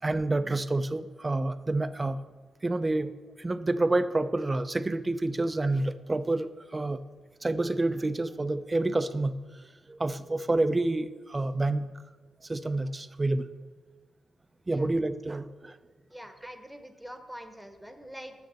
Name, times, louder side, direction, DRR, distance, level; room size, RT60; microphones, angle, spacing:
voice 1, 0.0-2.2 2.6-3.1 3.4-7.0 7.4-9.6 9.9-11.9 12.4-13.5 14.7-15.8, right 2 dB, 25° right, 12 dB, 0.5 m, -28 dB
voice 2, 16.1-18.3, equal, ahead, 7 dB, 1.0 m, -44 dB
6.6 x 6.4 x 7.0 m, 1.4 s
cardioid pair, 80°, 0 cm